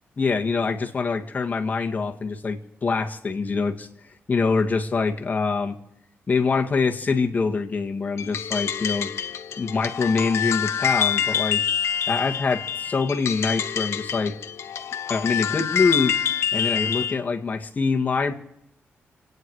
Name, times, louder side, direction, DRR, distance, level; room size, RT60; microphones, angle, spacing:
voice 1, 0.2-3.9 4.3-5.8 6.3-9.1 9.6-11.6 12.1-14.4 15.1-16.1 16.5-18.3, left 4 dB, 35° left, 3 dB, 1.9 m, -24 dB
sound 1, 8.2-17.2, left 8 dB, 75° left, 1.0 m, -26 dB
28.0 x 9.6 x 4.8 m, 0.80 s
cardioid pair, 105°, 5 cm